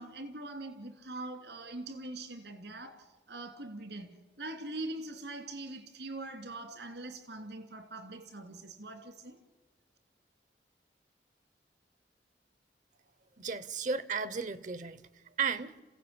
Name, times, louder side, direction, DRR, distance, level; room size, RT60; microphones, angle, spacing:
voice 1, 0.0-9.4, right 2 dB, 75° right, 2.8 m, -43 dB
voice 2, 13.4-15.0 15.4-15.8, right 5 dB, 45° right, 0.8 m, -34 dB
27.0 x 16.0 x 8.8 m
head